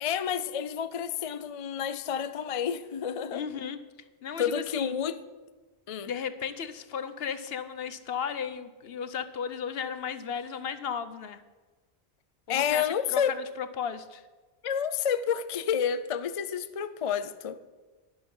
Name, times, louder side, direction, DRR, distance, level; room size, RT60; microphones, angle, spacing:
voice 1, 0.0-3.4 4.4-5.2 5.9-6.1 12.5-13.4 14.6-17.6, left 8 dB, 45° left, 12 dB, 0.5 m, -29 dB
voice 2, 3.3-3.8 4.2-4.9 6.0-11.4 12.5-14.2, left 7 dB, 70° left, 12 dB, 1.0 m, -35 dB
12.0 x 11.0 x 5.5 m, 1.3 s
omnidirectional pair, 1.1 m